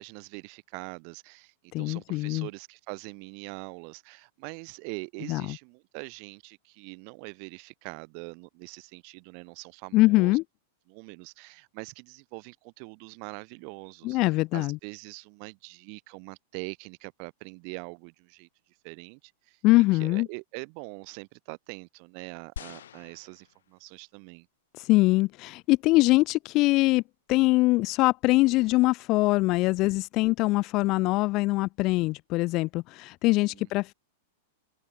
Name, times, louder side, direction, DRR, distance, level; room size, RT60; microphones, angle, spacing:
voice 1, 0.0-10.4 10.9-14.2 14.5-18.5 18.8-19.6 20.0-24.5 31.1-31.2 33.5-33.7, right 40 dB or more, 35° right, 2.6 m, -43 dB
voice 2, 1.7-2.5 5.3-5.4 9.9-10.4 14.0-14.8 19.6-20.3 24.8-27.0 27.3-33.9, left 21 dB, 25° left, 0.4 m, -23 dB
sound 1, 22.6-24.1 24.8-24.9, left 10 dB, 85° left, 6.6 m, -45 dB
open air
supercardioid pair, 175°, 0 cm